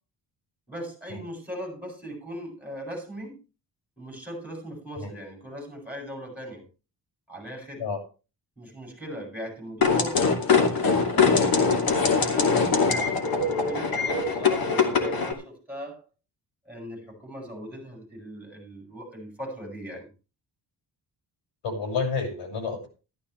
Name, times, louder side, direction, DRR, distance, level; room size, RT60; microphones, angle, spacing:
voice 1, 0.7-3.4 4.0-6.6 7.3-7.8 8.6-11.7 12.1-13.2 13.6-16.0 16.6-20.1, equal, 5° right, 0 dB, 7.6 m, -39 dB
sound 1, 9.8-15.3, left 5 dB, 55° left, 2.6 m, -22 dB
voice 2, 21.6-22.9, left 4 dB, 85° left, 3 dB, 6.3 m, -29 dB
14.0 x 13.0 x 3.3 m, 0.32 s
wide cardioid pair, 160°, 43 cm